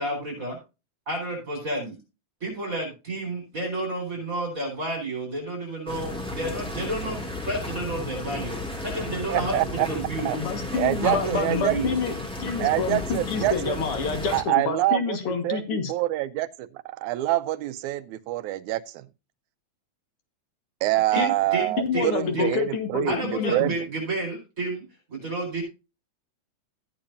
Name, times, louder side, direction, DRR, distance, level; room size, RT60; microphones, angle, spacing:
voice 1, 0.0-0.5 1.1-1.9 2.4-10.3 11.0-11.9 21.1-22.6 23.1-24.8 25.1-25.6, right 2 dB, 25° right, 4.7 m, -31 dB
sound 1, 5.9-14.4, left 1 dB, ahead, 1.6 m, -34 dB
voice 2, 9.3-9.9 10.3-10.4 10.8-11.9 12.6-13.8 14.3-19.0 20.8-23.7, right 16 dB, 85° right, 2.1 m, -26 dB
voice 3, 10.3-15.9 21.2-21.3 21.8-23.7, left 6 dB, 55° left, 2.3 m, -28 dB
14.5 x 8.6 x 2.6 m
omnidirectional pair, 3.4 m